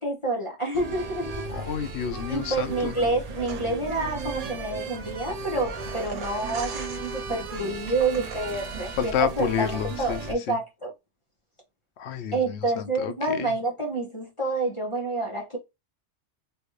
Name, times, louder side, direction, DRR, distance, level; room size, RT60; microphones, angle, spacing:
voice 1, 0.0-1.3 2.3-10.9 12.3-15.6, right 2 dB, 30° left, 0.9 m, -28 dB
sound 1, 0.7-10.3, right 3 dB, 50° right, 0.5 m, -36 dB
voice 2, 1.5-2.9 9.0-10.6 12.0-13.5, left 8 dB, 70° left, 0.8 m, -30 dB
sound 2, 3.4-9.0, right 5 dB, 80° right, 1.2 m, -43 dB
3.3 x 2.5 x 3.0 m
omnidirectional pair, 1.2 m